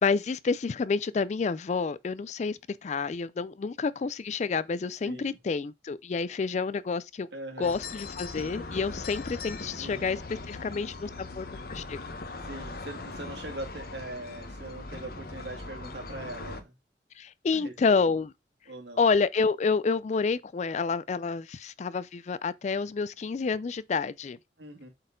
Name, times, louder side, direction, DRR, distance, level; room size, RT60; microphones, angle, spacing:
voice 1, 0.0-7.3 7.6-10.2 10.5-12.0 17.2-18.3 19.0-24.4, left 4 dB, 40° left, 0.3 m, -29 dB
voice 2, 5.0-5.4 7.3-7.8 9.8-10.1 12.4-16.7 17.5-18.0 18.7-19.0 24.6-24.9, right 2 dB, 80° right, 2.3 m, -41 dB
sound 1, 7.6-16.6, left 3 dB, 55° left, 0.9 m, -40 dB
7.9 x 4.2 x 3.8 m
head